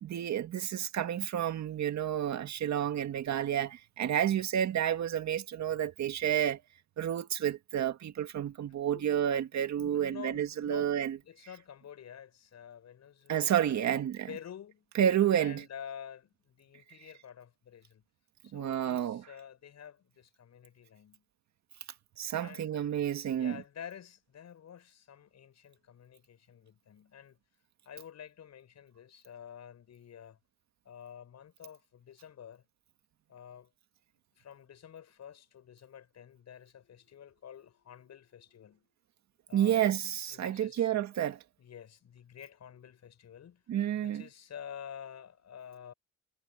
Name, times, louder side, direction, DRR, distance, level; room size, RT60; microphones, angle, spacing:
voice 1, 0.0-6.6 7.0-11.2 13.3-14.3 15.0-15.6 18.5-19.2 22.2-23.6 39.5-41.4 43.7-44.2, right 10 dB, 65° right, 2.1 m, -30 dB
voice 2, 9.8-14.9 15.4-18.0 18.4-21.2 22.4-22.9 23.3-27.4 27.8-30.4 30.8-32.6 33.3-33.7 34.4-38.9 39.5-40.0 40.3-40.9 41.6-43.6 44.0-45.9, left 8 dB, 60° left, 7.5 m, -49 dB
cardioid pair, 90°, 30 cm